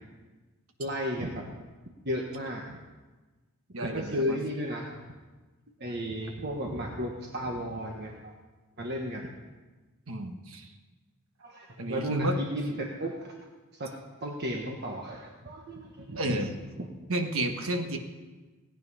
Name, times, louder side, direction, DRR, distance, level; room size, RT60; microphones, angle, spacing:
voice 1, 0.8-1.5 2.0-2.8 3.8-5.0 5.8-8.3 8.8-9.3 11.4-13.3 13.7-13.9 14.2-16.5 16.8-16.9, equal, 50° right, 0 dB, 1.4 m, -34 dB
voice 2, 3.7-4.4 10.1-10.7 11.8-12.3 16.1-16.5 17.1-18.0, right 1 dB, 65° right, 5 dB, 1.4 m, -31 dB
17.5 x 9.1 x 5.5 m, 1.2 s
head